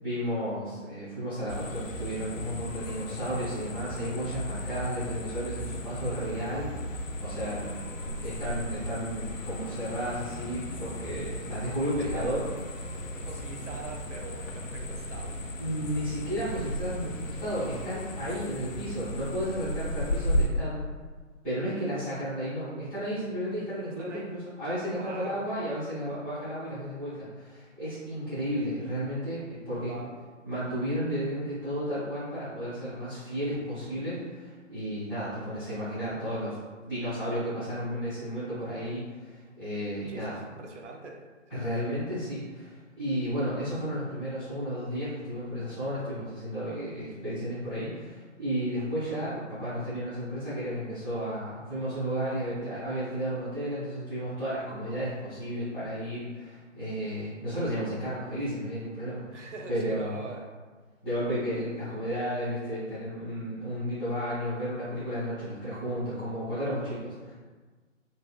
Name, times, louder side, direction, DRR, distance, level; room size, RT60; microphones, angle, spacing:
voice 1, 0.0-6.7 7.2-12.4 15.6-20.8 21.4-30.0 30.4-36.5 36.9-40.3 41.5-59.4 59.7-60.2 61.0-67.3, equal, 5° left, -20 dB, 0.6 m, -33 dB
sound 1, 1.5-20.5, equal, 80° left, 0.5 m, -35 dB
voice 2, 12.0-12.4 13.2-15.4 24.0-24.3 24.9-25.5 29.8-30.2 40.1-41.2 41.5-42.0 59.3-60.5, right 3 dB, 70° right, 1 dB, 0.5 m, -43 dB
2.7 x 2.5 x 2.3 m, 1.4 s
figure-of-eight pair, 145°, 38 cm